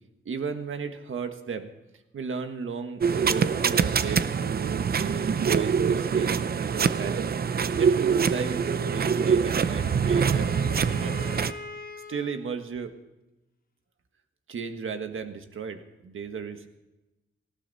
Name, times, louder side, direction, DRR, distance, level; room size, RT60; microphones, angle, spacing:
voice 1, 0.2-1.7 2.1-7.4 7.8-10.5 11.0-11.3 12.1-12.9 14.5-16.7, right 5 dB, 75° right, 7 dB, 1.6 m, -35 dB
sound 1, 3.0-11.5, right 6 dB, 50° right, 0.6 m, -24 dB
Wind instrument woodwind instrument, 9.2-12.5, left 3 dB, 45° left, 1.2 m, -42 dB
19.0 x 16.0 x 4.1 m, 1.0 s
wide cardioid pair, 160°, 21 cm